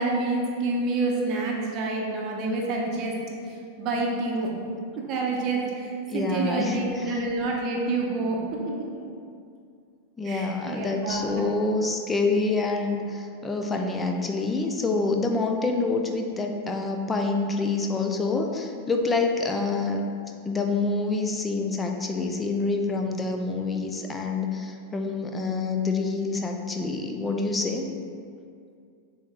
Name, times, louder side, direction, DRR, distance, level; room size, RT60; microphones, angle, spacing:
voice 1, 0.0-3.1 3.5-4.5 5.1-8.4 8.8-9.1 10.2-11.4, right 3 dB, 40° right, -1 dB, 0.7 m, -28 dB
voice 2, 6.1-7.2 10.2-20.0 20.5-27.9, left 3 dB, 15° left, 3 dB, 0.4 m, -27 dB
7.0 x 2.8 x 2.4 m, 2.3 s
figure-of-eight pair, 90°, 0 cm